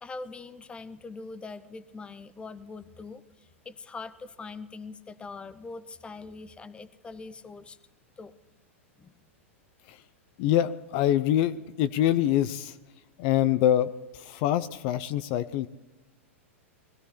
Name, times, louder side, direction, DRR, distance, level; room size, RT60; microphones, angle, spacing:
voice 1, 0.0-7.8 8.2-8.3 9.0-9.1, left 4 dB, 15° left, 14 dB, 0.8 m, -42 dB
voice 2, 10.4-12.8 13.2-15.7, left 11 dB, 50° left, 13 dB, 0.6 m, -25 dB
21.0 x 15.0 x 4.3 m, 1.1 s
hypercardioid pair, 105°, 7 cm